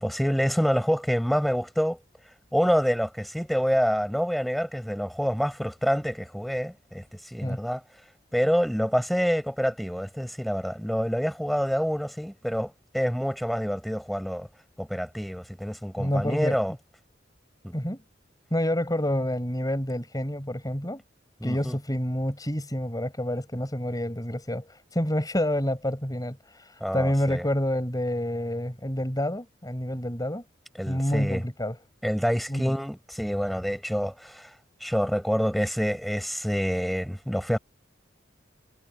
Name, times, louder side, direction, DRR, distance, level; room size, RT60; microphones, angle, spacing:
voice 1, 0.0-2.0 2.5-7.8 8.3-14.5 14.8-16.7 17.6-17.7 21.4-21.8 26.8-27.5 30.8-31.4 32.0-34.5 34.8-37.6, equal, ahead, 5.1 m, -27 dB
voice 2, 16.0-16.6 17.7-18.0 18.5-21.0 21.4-24.7 24.9-26.4 26.9-30.4 30.9-31.8 32.5-32.8, left 1 dB, 20° left, 5.2 m, -28 dB
head